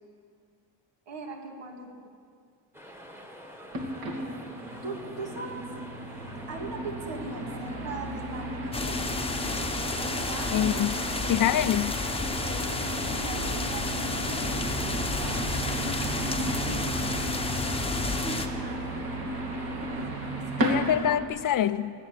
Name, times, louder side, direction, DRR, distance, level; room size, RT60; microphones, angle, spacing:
voice 1, 1.1-2.1 3.9-5.6 6.5-9.1 10.0-10.7 12.4-12.8 13.1-15.5 16.5-16.8 18.2-19.0 19.8-20.9, right 3 dB, 75° right, 1 dB, 2.7 m, -41 dB
sound 1, 2.7-21.1, equal, 5° right, 1.5 m, -47 dB
sound 2, 3.7-21.3, right 1 dB, 55° right, 2.5 m, -34 dB
sound 3, 8.7-18.5, left 3 dB, 15° left, 1.0 m, -31 dB
voice 2, 10.5-10.9 11.3-12.0 20.6-21.9, left 10 dB, 50° left, 14 dB, 0.5 m, -25 dB
20.0 x 7.7 x 8.5 m, 2.2 s
cardioid pair, 120°, 44 cm